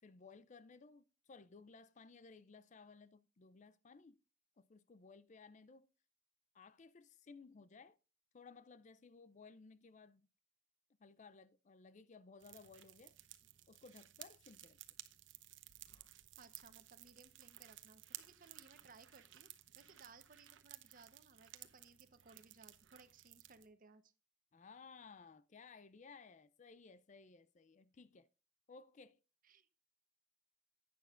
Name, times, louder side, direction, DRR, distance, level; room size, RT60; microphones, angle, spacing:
voice 1, 0.0-4.2 4.6-5.9 6.5-8.0 8.3-10.3 11.0-13.1 13.7-14.8 24.5-28.3 28.7-29.2, left 4 dB, 40° left, 0.4 m, -59 dB
sound 1, 12.4-23.7, right 14 dB, 85° right, 0.8 m, -57 dB
voice 2, 16.4-19.5 19.7-24.1 29.4-29.7, right 4 dB, 45° right, 1.0 m, -63 dB
11.0 x 9.4 x 2.5 m
head